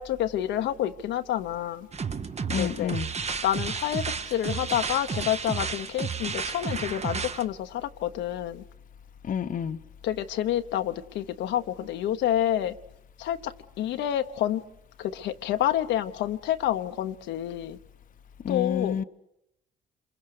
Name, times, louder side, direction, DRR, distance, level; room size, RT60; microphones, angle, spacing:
voice 1, 0.0-1.9 2.6-3.0 3.4-8.6 10.0-12.7 13.2-14.6 15.0-17.8 18.5-19.0, left 11 dB, 80° left, 1.0 m, -28 dB
sound 1, 1.9-7.5, right 6 dB, 35° right, 1.1 m, -32 dB
voice 2, 2.5-3.1 9.2-9.8 18.4-19.0, left 8 dB, 50° left, 0.9 m, -29 dB
27.0 x 22.0 x 6.7 m
supercardioid pair, 75°, 18 cm